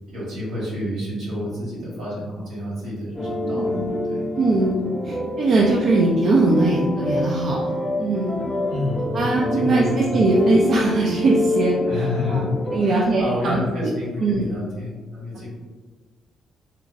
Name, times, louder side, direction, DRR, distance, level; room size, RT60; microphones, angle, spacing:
voice 1, 0.1-3.8 4.0-4.3 8.7-9.9 11.8-12.5 12.8-15.5, left 1 dB, 80° right, -6 dB, 1.3 m, -29 dB
sound 1, 3.1-12.8, left 2 dB, 15° left, 0.7 m, -26 dB
voice 2, 3.5-3.9 4.4-4.8 5.0-8.4 9.1-12.5 12.7-13.9 14.2-14.5, right 2 dB, 55° right, -3 dB, 0.4 m, -21 dB
3.0 x 2.5 x 2.4 m, 1.3 s
cardioid pair, 90°, 0 cm